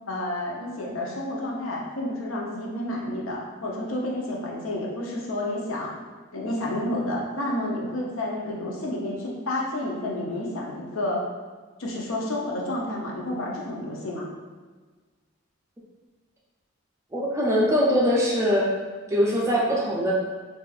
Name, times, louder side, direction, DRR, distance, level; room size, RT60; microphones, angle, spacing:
voice 1, 0.1-5.9 6.3-11.2 11.8-14.3, left 1 dB, 85° left, -2 dB, 0.7 m, -30 dB
voice 2, 17.1-18.7 19.1-20.1, equal, 15° right, -4 dB, 0.5 m, -22 dB
4.1 x 2.5 x 2.4 m, 1.4 s
head